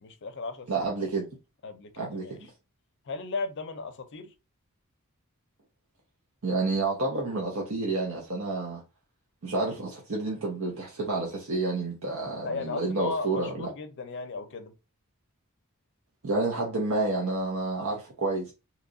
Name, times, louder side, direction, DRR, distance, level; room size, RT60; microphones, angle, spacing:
voice 1, 0.0-0.9 1.6-2.4 3.1-4.3 12.4-14.7, left 3 dB, 55° left, 0.5 m, -36 dB
voice 2, 0.7-1.3 2.0-2.5 6.4-8.8 9.4-13.7 16.2-18.5, right 3 dB, 65° right, 0.7 m, -29 dB
3.0 x 2.4 x 3.7 m
head